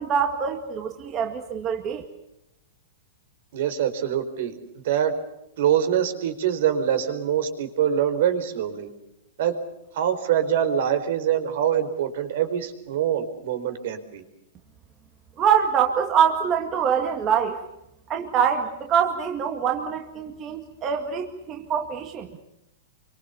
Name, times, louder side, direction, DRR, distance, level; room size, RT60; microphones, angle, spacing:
voice 1, 0.0-2.0 15.4-17.6 18.1-22.3, right 7 dB, 25° right, 4 dB, 2.0 m, -24 dB
voice 2, 3.5-4.6 4.8-5.1 5.6-8.9 9.4-9.5 9.9-14.2, right 9 dB, 65° right, 9 dB, 4.4 m, -24 dB
27.5 x 25.0 x 7.1 m, 0.87 s
supercardioid pair, 155°, 0 cm